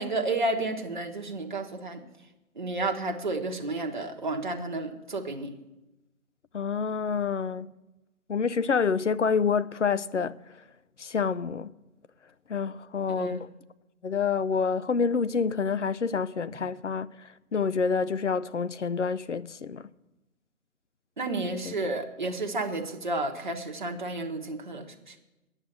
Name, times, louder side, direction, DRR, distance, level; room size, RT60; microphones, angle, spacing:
voice 1, 0.0-2.0 2.6-5.5 13.2-13.4 21.2-25.1, right 2 dB, 35° right, 1.0 m, -31 dB
voice 2, 6.5-7.7 8.3-10.4 11.0-11.7 12.5-13.5 14.0-19.9 21.8-21.9, left 5 dB, 55° left, 0.5 m, -28 dB
9.9 x 7.1 x 8.7 m
figure-of-eight pair, 165°, 43 cm